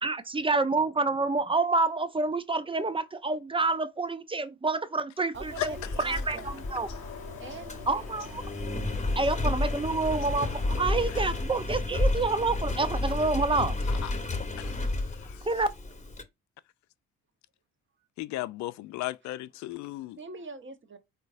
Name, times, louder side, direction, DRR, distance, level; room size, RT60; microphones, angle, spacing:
voice 1, 0.0-6.9 7.9-8.4 9.1-13.8 15.4-15.7, right 3 dB, 15° right, 0.6 m, -28 dB
voice 2, 5.3-6.7 7.4-8.3 8.9-9.1 19.6-19.7 20.2-21.0, right 4 dB, 35° right, 1.2 m, -44 dB
Engine, 5.4-16.2, left 2 dB, 20° left, 1.1 m, -32 dB
sound 1, 5.5-11.4, left 5 dB, 80° left, 1.2 m, -44 dB
voice 3, 14.6-15.4 18.2-20.2, left 17 dB, 55° left, 0.5 m, -36 dB
4.4 x 3.9 x 2.5 m
hypercardioid pair, 45°, 34 cm